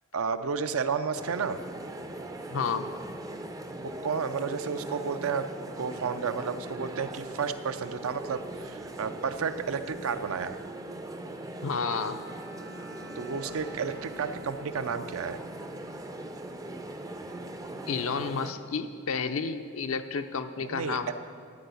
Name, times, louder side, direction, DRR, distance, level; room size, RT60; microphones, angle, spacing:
voice 1, 0.1-1.6 3.8-5.5 5.8-10.6 13.2-15.4 20.7-21.1, right 5 dB, 65° right, 10 dB, 0.5 m, -32 dB
sound 1, 1.1-18.5, right 1 dB, 15° right, 0.4 m, -40 dB
voice 2, 2.5-2.9 11.6-12.3 17.9-21.1, left 5 dB, 60° left, 8 dB, 0.5 m, -31 dB
Bowed string instrument, 11.8-15.0, right 1 dB, 85° right, 3.1 m, -50 dB
13.0 x 4.7 x 8.2 m, 2.2 s
head